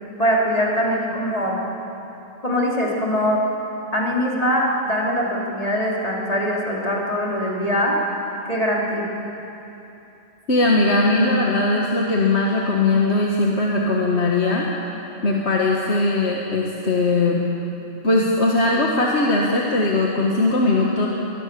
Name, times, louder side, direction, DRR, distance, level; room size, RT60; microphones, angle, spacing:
voice 1, 0.2-1.6 2.4-3.4 3.9-8.0 8.5-9.1, equal, 30° left, -4 dB, 3.8 m, -22 dB
voice 2, 10.5-14.7 15.2-17.4 18.0-21.1, left 2 dB, 65° left, -3 dB, 2.1 m, -19 dB
21.5 x 21.5 x 7.0 m, 3.0 s
omnidirectional pair, 1.2 m